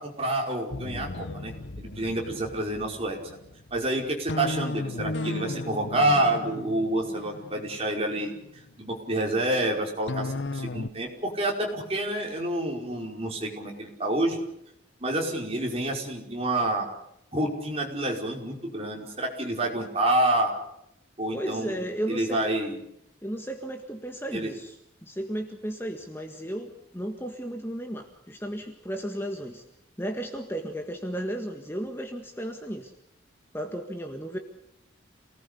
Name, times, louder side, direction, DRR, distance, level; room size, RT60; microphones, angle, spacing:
voice 1, 0.0-3.2 3.7-8.3 8.8-14.4 15.0-16.9 17.3-20.5 21.2-22.8 24.3-24.5, right 1 dB, 30° right, 0 dB, 5.3 m, -28 dB
sound 1, 0.7-9.0 10.1-10.9, left 2 dB, 65° left, 1.0 m, -35 dB
voice 2, 21.3-22.6 23.2-24.8 25.0-29.6 30.0-32.9 33.5-34.4, right 1 dB, 10° left, 4 dB, 1.8 m, -34 dB
28.5 x 19.0 x 8.3 m, 0.78 s
head